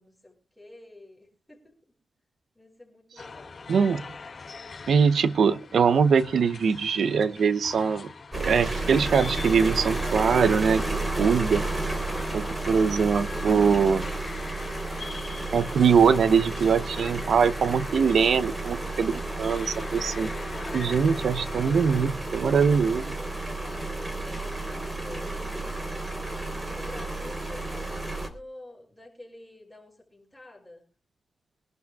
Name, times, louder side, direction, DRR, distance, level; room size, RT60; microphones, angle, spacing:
voice 1, 0.0-1.7 2.5-3.6 12.3-12.8 22.9-23.9 24.2-25.6 26.7-30.8, left 1 dB, 5° left, -5 dB, 5.9 m, -48 dB
sound 1, 3.2-22.1, left 4 dB, 50° left, 4.0 m, -43 dB
voice 2, 3.7-4.0 4.9-8.1 8.3-10.8 11.2-11.7 12.3-14.0 15.5-20.3 20.7-23.0, right 6 dB, 80° right, 14 dB, 0.7 m, -22 dB
sound 2, 8.3-28.3, right 2 dB, 20° right, 3.5 m, -32 dB
24.5 x 12.0 x 2.3 m, 0.34 s
cardioid pair, 85°, 0 cm